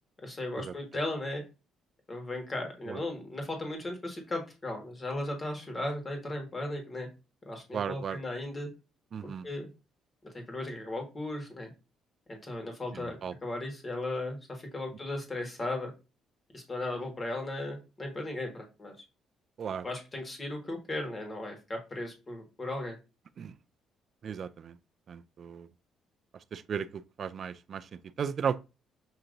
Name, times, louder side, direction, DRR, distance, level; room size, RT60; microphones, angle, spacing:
voice 1, 0.2-1.4 2.1-7.1 7.4-8.7 9.2-9.7 10.5-11.7 12.3-15.9 16.5-18.9 19.8-22.9, left 2 dB, 25° left, 1.5 m, -36 dB
voice 2, 7.7-8.2 9.1-9.5 12.9-13.3 19.6-19.9 23.4-23.6 24.2-24.8 25.1-25.7 26.3-28.6, right 7 dB, 45° right, 0.3 m, -36 dB
6.5 x 2.8 x 2.5 m
cardioid pair, 130°, 0 cm